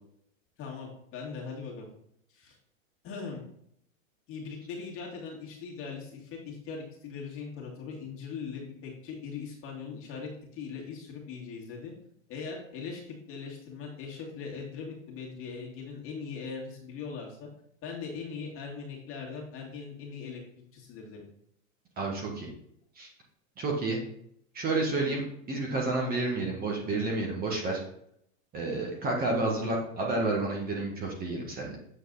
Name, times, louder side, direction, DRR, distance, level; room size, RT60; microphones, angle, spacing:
voice 1, 0.6-1.9 2.3-2.6 3.0-3.4 4.3-11.9 12.3-17.5 17.8-20.4 20.7-21.2, left 5 dB, 30° left, -2 dB, 2.2 m, -40 dB
voice 2, 22.0-22.5 23.0-23.1 23.6-24.0 24.5-27.8 28.5-31.8, right 2 dB, 20° right, -1 dB, 1.4 m, -30 dB
7.8 x 4.5 x 3.9 m, 0.71 s
supercardioid pair, 140°, 41 cm